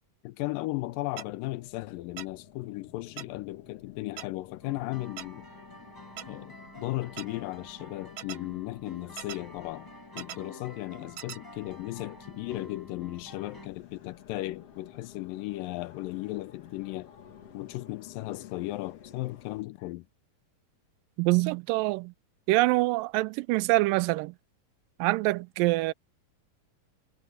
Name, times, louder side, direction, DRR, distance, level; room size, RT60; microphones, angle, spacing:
voice 1, 0.2-5.5 6.3-9.9 10.2-17.1 17.5-20.1, left 19 dB, 80° left, 2.2 m, -36 dB
sound 1, 0.7-19.6, left 9 dB, 50° left, 2.2 m, -54 dB
sound 2, 1.2-1.3 2.2-2.3 3.2-3.3 4.2-4.3 5.2-5.3 6.2-6.3 7.2-7.3 8.2-8.4 9.2-9.4 10.2-10.4 11.2-11.4, right 11 dB, 65° right, 2.3 m, -39 dB
sound 3, 4.6-13.7, equal, 5° left, 7.0 m, -49 dB
voice 2, 21.2-22.1 22.5-24.3 25.0-25.9, right 21 dB, 85° right, 2.2 m, -25 dB
omnidirectional pair, 4.0 m